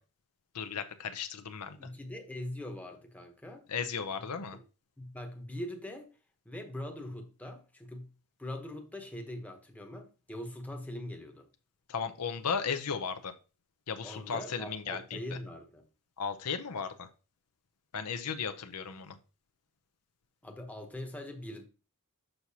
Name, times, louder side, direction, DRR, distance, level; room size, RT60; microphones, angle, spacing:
voice 1, 0.5-1.9 3.7-4.6 11.9-13.3 13.9-15.2 16.2-17.1 17.9-19.2, left 6 dB, 85° left, 0.7 m, -35 dB
voice 2, 1.8-3.7 4.5-4.6 5.0-6.1 6.4-8.1 8.4-11.5 14.0-15.8 20.4-21.6, left 1 dB, 5° left, 0.9 m, -42 dB
6.5 x 5.9 x 2.8 m
head